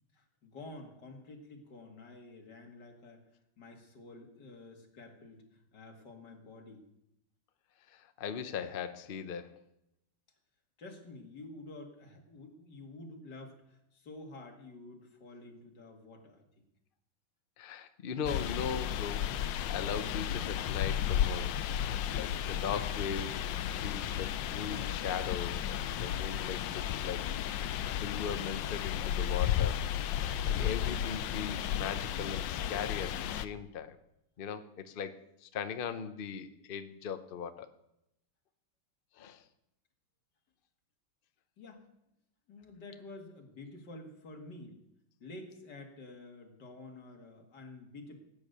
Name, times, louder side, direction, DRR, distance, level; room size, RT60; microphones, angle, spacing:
voice 1, 0.1-3.3 3.6-6.8 10.8-16.4 41.6-41.8 42.5-44.8 45.2-48.2, left 2 dB, 55° left, 2 dB, 2.6 m, -50 dB
voice 2, 7.9-9.6 17.6-21.6 22.1-23.4 23.8-27.3 27.9-29.8 30.4-34.0 34.4-37.7 39.2-39.4, left 7 dB, 90° left, 10 dB, 0.4 m, -39 dB
sound 1, 18.3-33.5, left 10 dB, 70° left, 1.3 m, -33 dB
16.0 x 9.3 x 6.7 m, 0.82 s
omnidirectional pair, 2.2 m